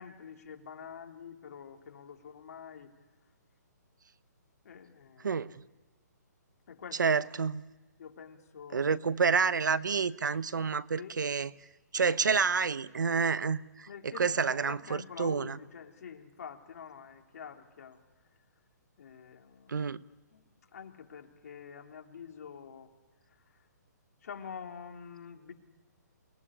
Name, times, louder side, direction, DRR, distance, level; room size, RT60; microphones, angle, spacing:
voice 1, 0.0-2.9 4.6-5.4 6.7-7.0 8.0-8.9 11.0-11.2 13.9-18.0 19.0-19.9 20.3-22.9 23.3-23.7 24.2-25.5, left 7 dB, 55° left, 2 dB, 3.3 m, -47 dB
voice 2, 7.0-7.6 8.7-11.5 11.9-13.9 14.1-15.6 19.7-20.0, right 5 dB, 85° right, 16 dB, 1.0 m, -29 dB
29.0 x 20.5 x 10.0 m, 1.2 s
hypercardioid pair, 155°, 10 cm